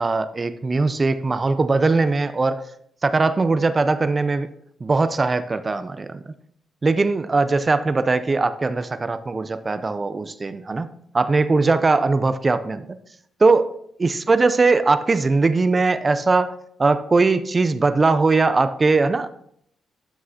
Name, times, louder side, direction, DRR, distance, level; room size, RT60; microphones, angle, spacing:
voice 1, 0.0-2.6 3.0-4.5 4.8-6.2 6.8-10.9 11.1-13.0 13.4-13.7 14.0-16.5 16.8-19.3, right 3 dB, 20° right, 12 dB, 0.3 m, -20 dB
12.5 x 6.1 x 2.8 m, 0.69 s
wide cardioid pair, 175°, 0 cm